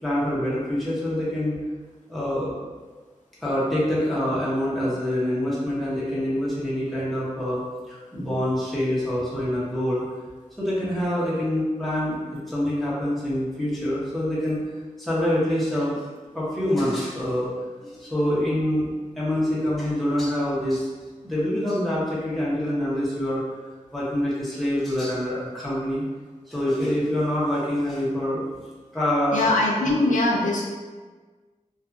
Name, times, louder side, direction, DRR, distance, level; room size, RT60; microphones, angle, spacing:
voice 1, 0.0-1.6 2.1-2.5 3.4-7.6 7.9-10.0 10.6-14.6 15.0-16.0 16.3-17.5 17.8-20.9 21.2-23.4 23.9-26.0 26.5-28.4 28.9-29.5 29.8-29.9, left 1 dB, ahead, -9 dB, 0.9 m, -25 dB
voice 2, 29.3-30.6, left 2 dB, 75° left, -2 dB, 0.4 m, -21 dB
2.7 x 2.3 x 2.4 m, 1.4 s
wide cardioid pair, 85°, 13 cm